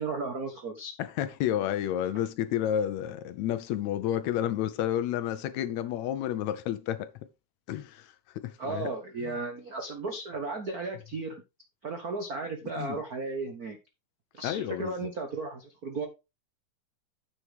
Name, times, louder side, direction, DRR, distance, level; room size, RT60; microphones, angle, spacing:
voice 1, 0.0-0.9 8.6-11.4 11.8-13.8 14.3-16.1, right 3 dB, 80° right, 0.8 m, -35 dB
voice 2, 1.0-7.1 7.7-8.9 9.2-9.4 12.8-13.0 14.4-15.1, left 11 dB, 75° left, 1.7 m, -31 dB
9.6 x 7.8 x 3.4 m
omnidirectional pair, 3.6 m